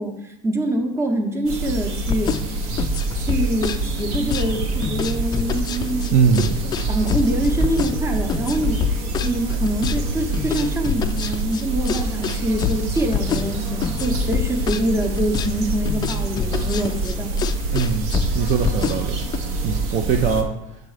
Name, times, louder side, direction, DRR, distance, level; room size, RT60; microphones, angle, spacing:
voice 1, 0.0-2.3 3.1-6.2 6.6-8.8 9.2-17.3, right 1 dB, 15° right, 5 dB, 0.8 m, -25 dB
sound 1, 1.5-20.4, right 3 dB, 70° right, 1.1 m, -26 dB
sound 2, 2.0-19.4, left 8 dB, 20° left, 0.3 m, -26 dB
voice 2, 6.1-6.6 17.7-18.0 18.3-19.2 19.6-20.5, right 6 dB, 40° right, 5 dB, 0.5 m, -20 dB
6.5 x 3.7 x 4.9 m, 0.87 s
supercardioid pair, 125°, 20 cm